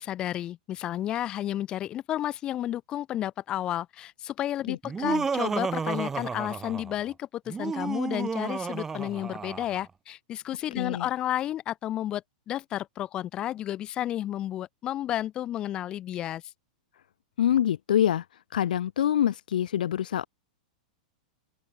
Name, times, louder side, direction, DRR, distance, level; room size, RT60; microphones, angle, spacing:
voice 1, 0.0-16.4, left 12 dB, 20° left, 2.5 m, -32 dB
voice 2, 4.7-5.2 10.8-11.1 17.4-18.2 18.5-20.2, left 10 dB, 85° left, 1.0 m, -26 dB
Laughter, 4.8-7.0 7.5-9.8, right 5 dB, 10° right, 1.4 m, -31 dB
open air
supercardioid pair, 175°, 4 cm